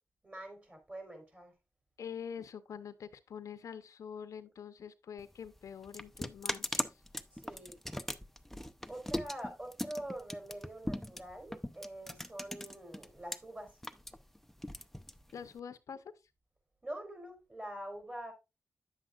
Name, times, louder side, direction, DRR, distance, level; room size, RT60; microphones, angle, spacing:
voice 1, 0.2-1.5 7.3-7.8 8.9-13.8 16.8-18.3, right 1 dB, 25° right, 3.9 m, -45 dB
voice 2, 2.0-7.0 15.3-16.1, left 7 dB, 80° left, 0.7 m, -45 dB
sound 1, 5.2-13.4 13.7-15.6, left 1 dB, 5° left, 0.6 m, -39 dB
9.6 x 7.4 x 2.4 m
cardioid pair, 75°, 5 cm